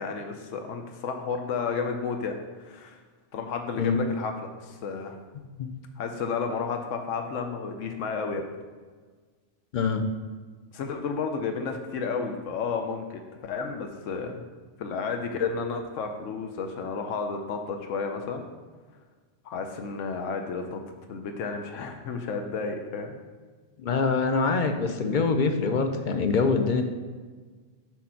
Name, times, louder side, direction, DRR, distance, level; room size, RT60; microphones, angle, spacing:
voice 1, 0.0-3.0 3.3-5.2 6.0-8.4 10.7-14.3 14.8-18.5 19.4-20.8 21.1-23.2, left 5 dB, 85° left, 5 dB, 1.1 m, -32 dB
voice 2, 5.3-5.7 9.7-10.0 23.8-26.8, left 4 dB, 50° left, 6 dB, 0.6 m, -24 dB
6.5 x 4.0 x 5.7 m, 1.5 s
omnidirectional pair, 1.3 m